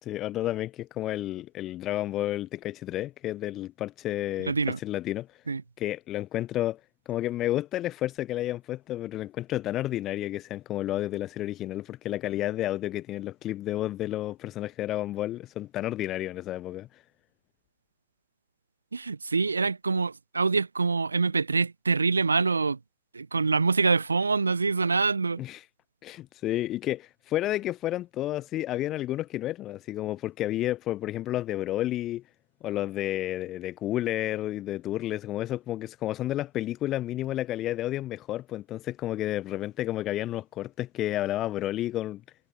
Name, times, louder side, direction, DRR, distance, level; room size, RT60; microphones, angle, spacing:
voice 1, 0.0-5.4 5.8-6.8 7.1-17.0 25.4-25.7 26.0-32.2 32.6-42.2, left 14 dB, 45° left, 6.0 m, -31 dB
voice 2, 4.5-4.8 5.5-5.6 18.9-22.8 23.1-25.4, right 4 dB, 90° right, 1.3 m, -25 dB
figure-of-eight pair, 80°, 0 cm